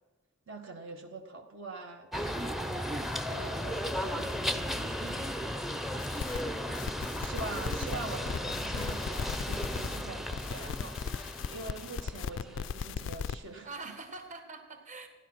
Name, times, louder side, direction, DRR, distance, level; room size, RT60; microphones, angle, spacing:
voice 1, 0.5-5.4 6.0-6.1 7.2-13.7, right 3 dB, 65° right, 4 dB, 1.4 m, -44 dB
sound 1, 2.1-13.3, equal, ahead, 0.6 m, -35 dB
sound 2, 6.0-6.4 6.7-10.0 10.3-13.3, left 6 dB, 65° left, 0.3 m, -37 dB
voice 2, 6.4-7.5 13.6-15.1, right 3 dB, 35° right, 6 dB, 1.5 m, -47 dB
15.0 x 11.0 x 6.0 m, 1.2 s
head